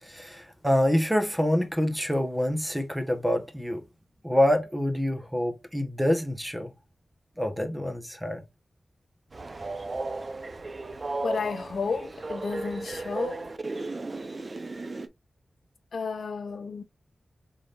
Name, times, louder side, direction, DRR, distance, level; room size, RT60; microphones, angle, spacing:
voice 1, 0.0-3.8 4.2-6.7 7.4-8.4, left 1 dB, 5° right, 1.3 m, -26 dB
Train, 9.3-15.1, right 3 dB, 45° right, 0.8 m, -35 dB
voice 2, 11.2-13.4 15.9-16.8, left 5 dB, 75° left, 0.7 m, -32 dB
5.1 x 3.8 x 2.6 m
cardioid pair, 65°, 0 cm